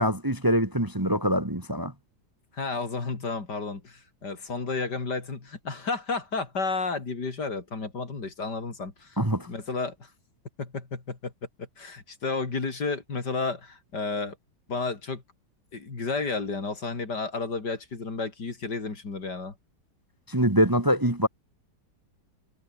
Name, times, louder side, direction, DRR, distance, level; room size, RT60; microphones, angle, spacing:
voice 1, 0.0-1.9 9.2-9.5 20.3-21.3, equal, 10° right, 1.9 m, -24 dB
voice 2, 2.5-9.2 9.5-10.1 10.6-11.3 11.6-14.4 14.7-15.2 15.7-19.5, left 4 dB, 60° left, 4.0 m, -32 dB
omnidirectional pair, 2.0 m